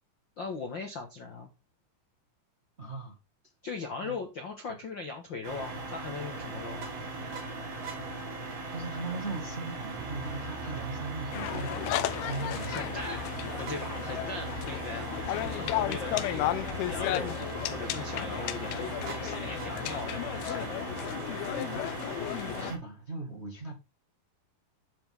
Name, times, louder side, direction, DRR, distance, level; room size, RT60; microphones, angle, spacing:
voice 1, 0.4-1.5 3.6-6.9 12.7-13.3 13.6-16.5 16.9-17.4 17.7-20.8, left 4 dB, 60° left, 1.2 m, -39 dB
voice 2, 2.8-3.2 4.0-4.2 4.7-4.8 8.7-12.9 21.5-21.9 22.5-23.7, right 3 dB, 30° right, 1.2 m, -38 dB
sound 1, 5.4-22.8, right 2 dB, 85° right, 4.7 m, -39 dB
sound 2, 10.0-21.3, right 2 dB, 10° right, 2.9 m, -46 dB
sound 3, 11.3-22.7, left 14 dB, 90° left, 2.7 m, -34 dB
10.0 x 7.2 x 3.6 m
omnidirectional pair, 4.4 m